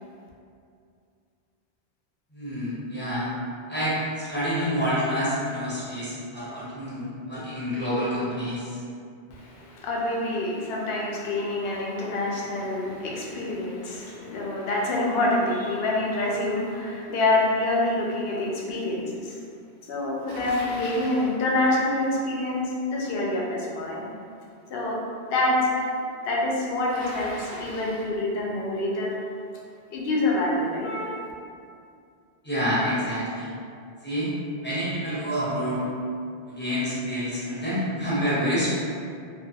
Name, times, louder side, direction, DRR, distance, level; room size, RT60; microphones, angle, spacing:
voice 1, 2.3-3.3 3.7-8.8 32.4-33.5 34.0-34.3 34.6-35.8 36.5-38.7, equal, 10° left, -11 dB, 0.6 m, -28 dB
voice 2, 9.3-19.4 19.9-22.6 22.9-24.1 24.7-25.0 25.3-25.9 26.2-29.1 29.9-31.3, left 2 dB, 70° left, -3 dB, 0.7 m, -26 dB
Bicycle, 20.3-21.4 26.9-28.2, equal, 30° right, 0.5 m, -40 dB
2.3 x 2.2 x 2.7 m, 2.4 s
omnidirectional pair, 1.1 m